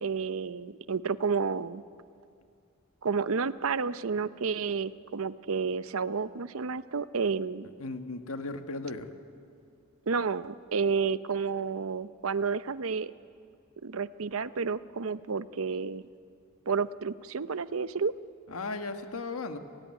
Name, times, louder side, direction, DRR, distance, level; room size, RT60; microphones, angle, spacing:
voice 1, 0.0-1.8 3.0-7.7 10.1-13.1 13.8-16.1 16.7-18.1, right 5 dB, 75° right, 15 dB, 0.7 m, -30 dB
voice 2, 7.8-9.1 18.5-19.6, left 3 dB, 85° left, 7 dB, 1.6 m, -36 dB
30.0 x 16.0 x 9.7 m, 2.4 s
head